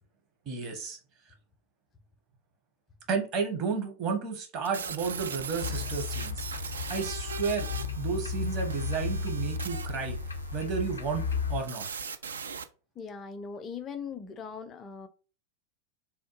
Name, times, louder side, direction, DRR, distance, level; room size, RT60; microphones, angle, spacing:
voice 1, 0.5-1.0 3.1-6.5 6.9-7.7 8.0-10.2 10.5-11.9, right 5 dB, 35° right, 0.9 m, -32 dB
sound 1, 4.6-12.6, right 6 dB, 70° right, 0.3 m, -40 dB
sound 2, 5.6-11.6, left 5 dB, 75° left, 0.5 m, -34 dB
voice 2, 13.0-15.1, left 6 dB, 25° left, 0.4 m, -40 dB
3.5 x 2.2 x 3.0 m
figure-of-eight pair, 90°, 0 cm